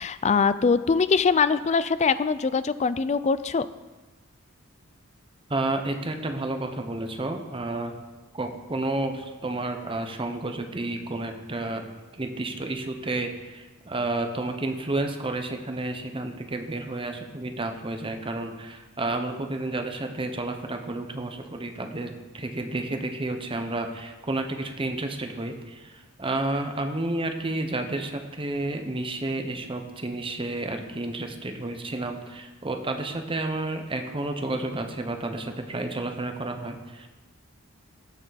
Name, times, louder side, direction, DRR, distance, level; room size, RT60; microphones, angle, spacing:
voice 1, 0.0-3.7, left 5 dB, 30° left, 14 dB, 0.4 m, -23 dB
voice 2, 5.5-7.9 8.3-11.8 12.2-37.1, right 2 dB, 25° right, 5 dB, 0.9 m, -31 dB
18.0 x 7.0 x 4.1 m, 1.2 s
head